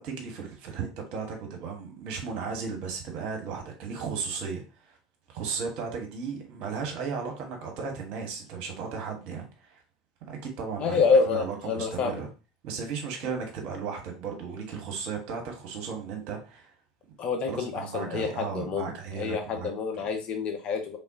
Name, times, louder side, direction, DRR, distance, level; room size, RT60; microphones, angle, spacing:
voice 1, 0.0-4.6 4.9-5.0 5.3-9.8 10.3-12.3 12.6-16.7 17.5-19.7 20.0-20.1, right 5 dB, 55° right, 2 dB, 1.3 m, -35 dB
voice 2, 10.8-12.2 17.2-21.0, left 5 dB, 40° left, 3 dB, 1.0 m, -27 dB
4.1 x 3.4 x 2.8 m, 0.32 s
figure-of-eight pair, 75°, 3 cm